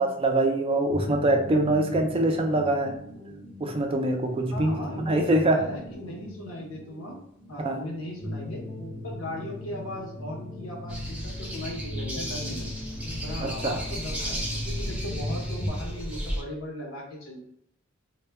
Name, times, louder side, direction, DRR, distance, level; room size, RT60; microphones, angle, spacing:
voice 1, 0.0-3.0 3.6-5.6 7.6-7.8 13.4-13.8, right 1 dB, 25° right, 3 dB, 0.3 m, -24 dB
sound 1, 0.9-15.7, left 1 dB, 25° left, 0.6 m, -39 dB
voice 2, 4.5-5.2 5.5-7.2 7.5-8.6 9.0-12.7 13.2-17.4, left 1 dB, 90° left, 0 dB, 0.8 m, -38 dB
sound 2, 10.9-16.4, equal, 5° right, 0.7 m, -34 dB
2.1 x 2.1 x 3.3 m, 0.72 s
head